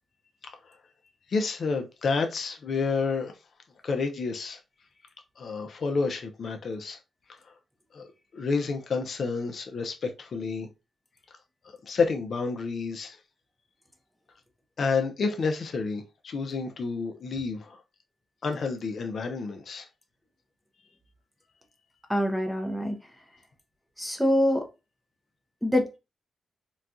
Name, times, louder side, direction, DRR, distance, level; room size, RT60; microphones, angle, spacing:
voice 1, 1.3-3.3 3.8-4.6 5.4-7.0 7.9-8.1 8.3-10.7 11.8-13.2 14.8-17.8 18.4-19.9, left 4 dB, 50° left, 0.5 m, -29 dB
voice 2, 22.1-23.0 24.0-24.7 25.6-26.0, equal, ahead, 0.6 m, -25 dB
4.0 x 2.2 x 2.4 m
wide cardioid pair, 140°, 0 cm